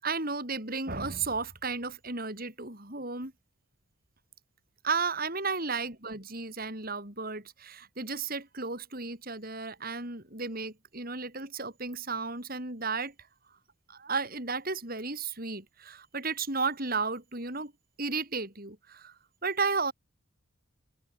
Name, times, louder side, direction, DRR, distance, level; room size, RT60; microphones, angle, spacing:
voice 1, 0.0-3.3 4.8-13.1 13.9-17.7 18.0-19.2 19.4-19.9, right 4 dB, 45° right, 5.6 m, -33 dB
open air
head